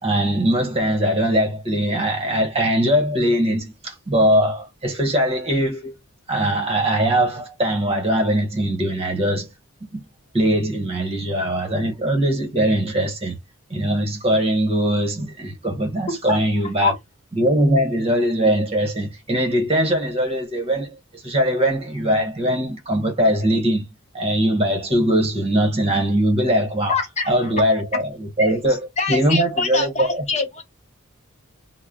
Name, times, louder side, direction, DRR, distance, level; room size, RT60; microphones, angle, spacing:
voice 1, 0.0-5.9 6.3-9.5 9.9-10.0 10.3-13.4 13.7-16.9 17.3-23.9 24.1-27.0 27.3-30.2, right 1 dB, 25° right, 1.1 m, -21 dB
voice 2, 16.1-16.4 16.7-17.0 26.9-27.3 27.9-28.0 28.4-30.6, left 4 dB, 30° left, 0.6 m, -25 dB
3.1 x 2.1 x 3.7 m
head